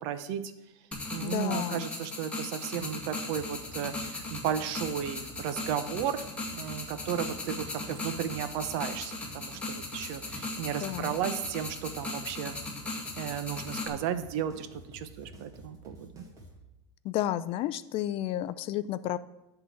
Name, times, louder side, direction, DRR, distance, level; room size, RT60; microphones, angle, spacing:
voice 1, 0.0-0.4 1.1-6.2 6.5-12.5 13.2-16.2, right 9 dB, 60° right, 10 dB, 0.9 m, -34 dB
sound 1, 0.9-13.9, left 2 dB, 10° left, 1.7 m, -38 dB
voice 2, 1.2-1.9 10.8-11.2 17.0-19.2, left 13 dB, 40° left, 15 dB, 0.4 m, -32 dB
sound 2, 3.3-16.6, right 2 dB, 25° right, 1.9 m, -51 dB
11.0 x 3.9 x 7.1 m, 0.96 s
supercardioid pair, 130°, 14 cm